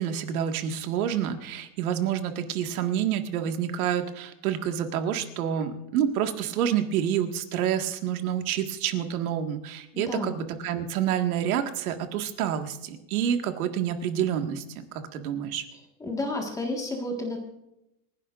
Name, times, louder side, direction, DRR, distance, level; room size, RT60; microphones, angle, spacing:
voice 1, 0.0-14.6 14.9-15.6, right 9 dB, 85° right, 6 dB, 1.9 m, -28 dB
voice 2, 9.9-10.3 16.0-17.4, left 2 dB, 10° left, 1 dB, 1.7 m, -31 dB
28.5 x 11.5 x 2.6 m, 0.87 s
supercardioid pair, 175°, 42 cm